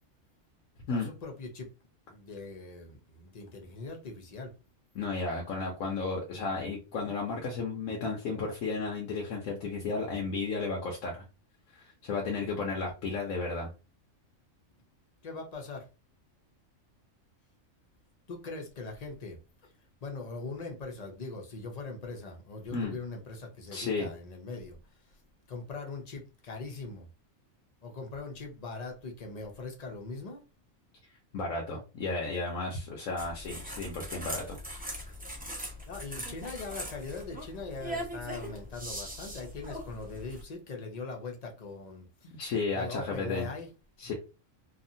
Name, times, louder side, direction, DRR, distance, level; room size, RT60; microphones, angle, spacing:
voice 1, 0.8-1.7 2.1-4.5 15.2-15.9 18.3-19.7 20.0-24.8 25.5-27.1 27.8-30.4 35.9-42.3 42.7-43.7 44.0-44.1, left 3 dB, 40° left, 0.6 m, -41 dB
voice 2, 4.9-11.2 11.7-13.7 22.7-22.9 23.7-24.1 31.3-34.6 42.3-43.5 44.0-44.1, left 3 dB, 85° left, 1.1 m, -33 dB
sound 1, 33.2-40.4, equal, 10° right, 0.4 m, -41 dB
2.8 x 2.4 x 2.6 m
omnidirectional pair, 1.3 m